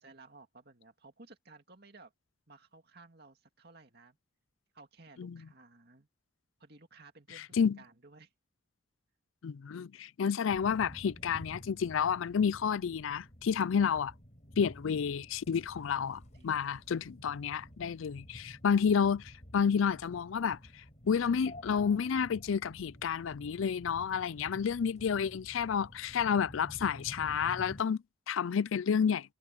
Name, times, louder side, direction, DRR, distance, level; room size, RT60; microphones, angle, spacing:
voice 1, 0.0-2.1 2.5-4.2 4.7-6.1 6.6-8.3 16.3-16.9, right 3 dB, 50° right, 2.4 m, -57 dB
voice 2, 9.4-14.1 14.6-20.6 21.1-29.3, left 7 dB, 80° left, 0.4 m, -30 dB
sound 1, 10.5-27.8, equal, 35° left, 4.7 m, -51 dB
head